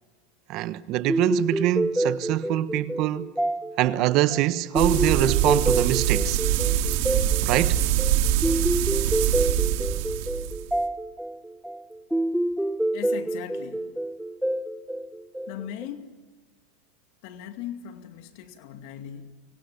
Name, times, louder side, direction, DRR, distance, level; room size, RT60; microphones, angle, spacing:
voice 1, 0.5-3.3 3.8-6.4 7.4-7.8, right 14 dB, 50° right, 1.2 m, -24 dB
sound 1, 1.1-15.9, right 1 dB, ahead, 0.8 m, -28 dB
sound 2, 4.8-10.8, right 11 dB, 65° right, 2.5 m, -24 dB
voice 2, 12.9-13.9 15.5-16.1 17.2-19.4, left 10 dB, 60° left, 2.3 m, -39 dB
29.5 x 25.0 x 7.2 m
supercardioid pair, 125°, 0 cm